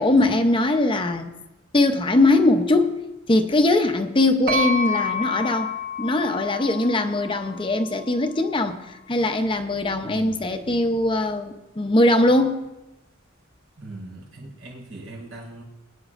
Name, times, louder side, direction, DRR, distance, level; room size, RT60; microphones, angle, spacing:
voice 1, 0.0-1.3 1.7-3.0 3.3-5.7 6.0-12.6, left 2 dB, 25° left, 0.7 m, -21 dB
sound 1, 4.5-8.2, left 4 dB, 50° right, 4.3 m, -29 dB
voice 2, 10.0-10.5 13.8-15.6, right 2 dB, 85° right, 4.6 m, -40 dB
22.0 x 10.0 x 2.5 m
head